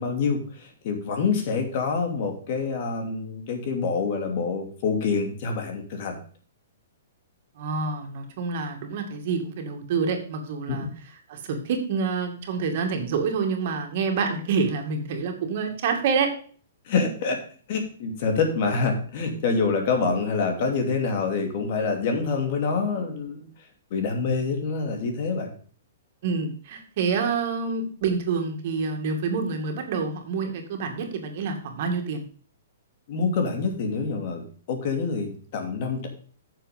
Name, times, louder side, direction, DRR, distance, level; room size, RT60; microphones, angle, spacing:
voice 1, 0.0-6.2 10.7-10.9 16.9-17.4 17.7-23.5 23.9-25.5 33.1-36.1, left 4 dB, 45° left, 4 dB, 2.7 m, -26 dB
voice 2, 7.6-10.9 11.3-16.3 26.2-32.2, right 5 dB, 50° right, 4 dB, 2.3 m, -27 dB
9.1 x 6.9 x 5.3 m, 0.43 s
hypercardioid pair, 155°, 0 cm